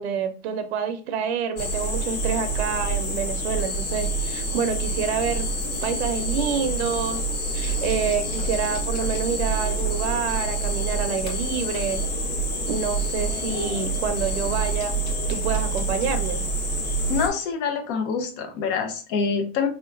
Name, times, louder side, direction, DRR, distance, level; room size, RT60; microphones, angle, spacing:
voice 1, 0.0-5.5 5.8-7.2 7.5-12.0 12.7-14.9 15.3-16.4, right 6 dB, 75° right, 9 dB, 0.6 m, -28 dB
sound 1, 1.6-17.3, right 2 dB, 30° left, 1.1 m, -27 dB
voice 2, 17.1-19.7, left 5 dB, 55° left, 5 dB, 0.9 m, -26 dB
4.5 x 2.8 x 2.5 m, 0.38 s
supercardioid pair, 140°, 33 cm